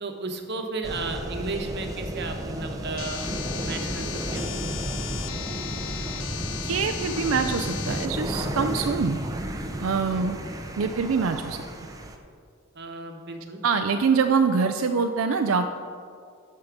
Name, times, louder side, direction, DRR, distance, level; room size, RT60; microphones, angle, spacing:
voice 1, 0.0-3.3 3.6-4.1 4.3-4.5 10.1-10.3 12.7-13.6, right 3 dB, 55° right, 4 dB, 1.1 m, -34 dB
sound 1, 0.8-12.2, right 1 dB, 15° right, 0.7 m, -33 dB
sound 2, 3.0-8.1, left 10 dB, 65° left, 0.5 m, -36 dB
voice 2, 6.6-9.2 9.8-10.4 10.8-11.6 13.6-15.7, right 5 dB, 90° right, 6 dB, 0.5 m, -24 dB
13.0 x 5.6 x 5.1 m, 2.3 s
head